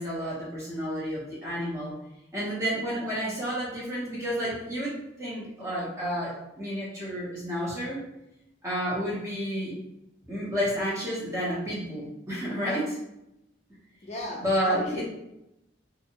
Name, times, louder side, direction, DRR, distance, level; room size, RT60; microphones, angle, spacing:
voice 1, 0.0-1.9 2.3-8.0 8.6-9.7 10.3-13.0 14.4-15.0, equal, 15° right, -6 dB, 0.8 m, -30 dB
voice 2, 14.0-15.0, left 2 dB, 35° left, -3 dB, 0.4 m, -35 dB
2.7 x 2.2 x 2.8 m, 0.87 s
head